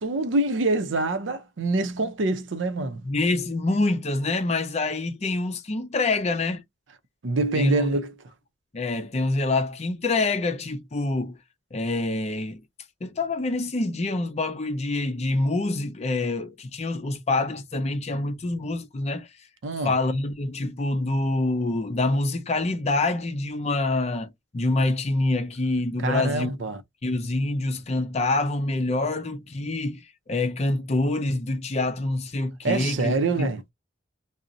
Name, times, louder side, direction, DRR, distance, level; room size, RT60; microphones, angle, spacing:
voice 1, 0.0-3.0 7.2-8.1 19.6-19.9 26.0-26.8 32.6-33.6, right 2 dB, 75° right, 0.5 m, -25 dB
voice 2, 3.0-6.6 7.5-7.9 8.7-11.4 11.7-12.6 13.0-19.3 19.8-26.5 27.0-33.5, left 2 dB, 35° left, 0.5 m, -26 dB
2.6 x 2.0 x 3.7 m
head